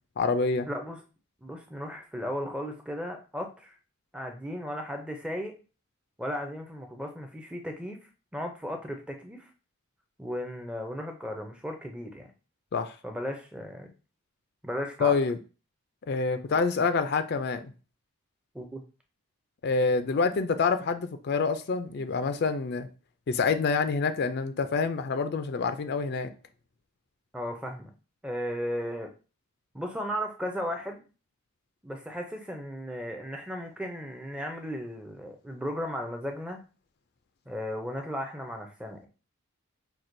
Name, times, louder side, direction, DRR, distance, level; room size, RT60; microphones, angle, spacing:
voice 1, 0.2-0.7 12.7-13.0 15.0-15.4 16.1-17.6 19.6-22.9 23.3-26.3, left 4 dB, 50° left, 0.4 m, -27 dB
voice 2, 0.7-1.0 1.4-3.8 4.1-5.5 6.2-8.0 8.3-9.5 10.2-12.3 13.0-13.9 14.6-15.2 18.5-18.8 27.3-27.9 28.2-29.1 29.7-31.0 31.8-36.6 37.5-39.1, equal, 5° right, 0.5 m, -35 dB
5.8 x 2.2 x 2.6 m
head